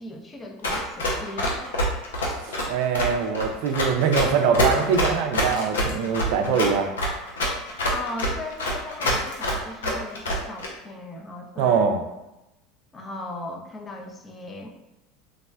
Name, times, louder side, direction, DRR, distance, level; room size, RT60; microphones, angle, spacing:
voice 1, 0.0-1.6 7.9-12.1 12.9-14.7, left 2 dB, 25° left, 3 dB, 0.5 m, -37 dB
Run, 0.6-10.7, equal, 85° left, 0.5 m, -25 dB
voice 2, 2.4-6.9 11.6-12.0, right 6 dB, 65° right, 5 dB, 0.4 m, -23 dB
3.4 x 2.1 x 2.2 m, 0.94 s
hypercardioid pair, 85°, 0 cm